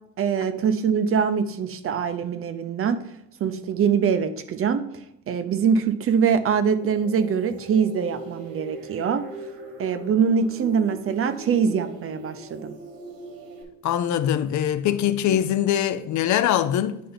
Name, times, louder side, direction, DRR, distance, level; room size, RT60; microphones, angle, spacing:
voice 1, 0.2-3.0 3.4-4.8 5.3-9.3 9.8-12.8, right 6 dB, 40° right, 0.6 m, -23 dB
sound 1, 6.8-13.6, right 1 dB, 80° right, 1.6 m, -40 dB
voice 2, 13.8-17.0, left 10 dB, 60° left, 0.5 m, -22 dB
9.5 x 3.3 x 3.9 m
cardioid pair, 115°, 35 cm